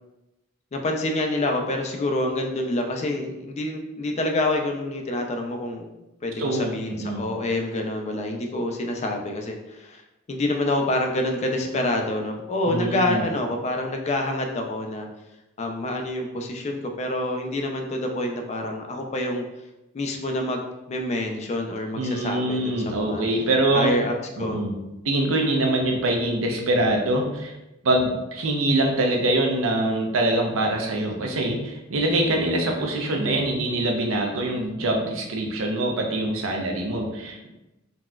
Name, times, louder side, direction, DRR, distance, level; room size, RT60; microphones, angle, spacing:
voice 1, 0.7-5.9 6.2-10.0 10.3-15.1 15.6-19.5 19.9-23.2 23.7-24.7, left 1 dB, 35° left, 3 dB, 0.3 m, -27 dB
voice 2, 6.4-7.2 12.7-13.2 22.0-23.9 24.4-24.7 25.0-27.5 27.8-37.5, right 1 dB, 80° right, 1 dB, 0.5 m, -24 dB
4.0 x 2.2 x 2.2 m, 0.97 s
head